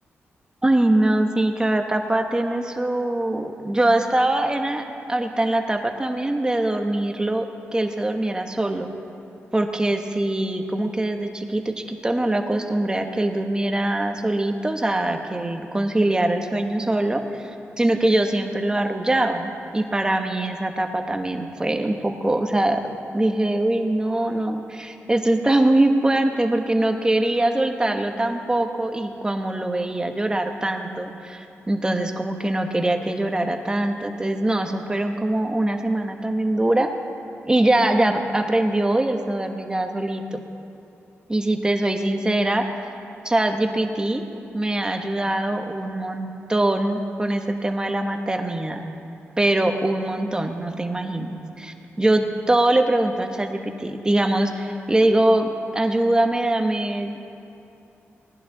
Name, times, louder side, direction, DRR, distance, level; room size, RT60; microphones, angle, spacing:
voice 1, 0.6-7.5 7.7-8.9 9.5-22.8 23.1-36.9 37.5-40.4 41.3-42.7 43.2-44.2 44.5-48.9 49.4-57.2, right 1 dB, 15° right, 5 dB, 1.0 m, -23 dB
19.0 x 11.0 x 3.9 m, 2.7 s
cardioid pair, 90°, 5 cm